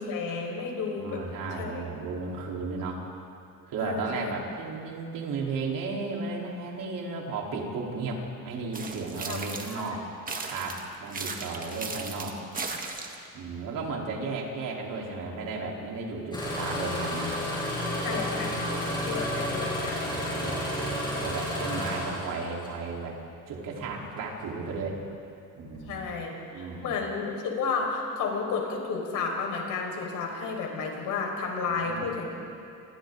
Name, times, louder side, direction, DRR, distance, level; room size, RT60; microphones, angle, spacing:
voice 1, 0.0-1.2 1.6-1.9 3.8-4.3 9.3-9.8 18.0-18.6 19.0-20.1 25.9-32.3, left 4 dB, 65° left, 0 dB, 5.3 m, -32 dB
voice 2, 1.0-3.0 3.7-10.0 10.4-12.4 13.3-17.3 18.4-19.4 19.8-23.2 23.5-25.0 25.6-26.1 26.5-27.0 31.7-32.1, right 3 dB, 65° right, -2 dB, 4.1 m, -35 dB
sound 1, 8.7-9.9 10.3-13.3, right 4 dB, 25° right, 1.8 m, -36 dB
Engine starting, 16.3-22.8 23.7-24.0 24.6-25.0 25.6-25.8, left 1 dB, 15° left, 7.3 m, -31 dB
29.0 x 26.5 x 3.9 m, 2.6 s
cardioid pair, 160°, 35 cm